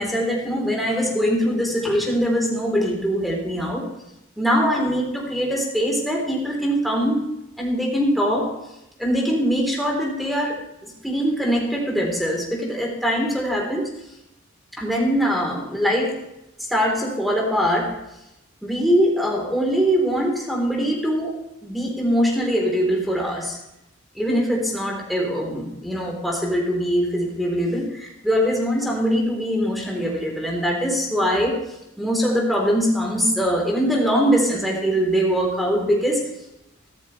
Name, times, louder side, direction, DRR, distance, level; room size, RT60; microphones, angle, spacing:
voice 1, 0.0-3.9 4.4-7.3 7.6-8.6 9.0-13.9 14.8-16.2 16.7-18.0 18.6-21.4 21.6-23.6 24.2-31.7 32.0-36.3, equal, ahead, -2 dB, 3.7 m, -22 dB
15.0 x 13.5 x 3.3 m, 0.86 s
head